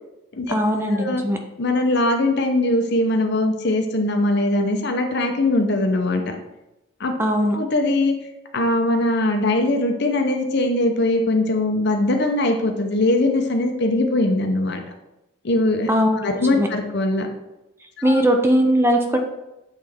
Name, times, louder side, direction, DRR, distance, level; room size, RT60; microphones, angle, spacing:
voice 1, 0.5-1.4 7.2-7.6 15.9-16.3 16.6-16.7 18.0-19.2, equal, 10° right, 3 dB, 0.5 m, -19 dB
voice 2, 1.6-6.4 7.0-7.1 7.5-8.1 8.5-14.8 15.4-15.9 16.2-17.3 18.0-18.2, left 2 dB, 55° left, 4 dB, 0.7 m, -21 dB
8.1 x 3.3 x 3.5 m, 0.95 s
head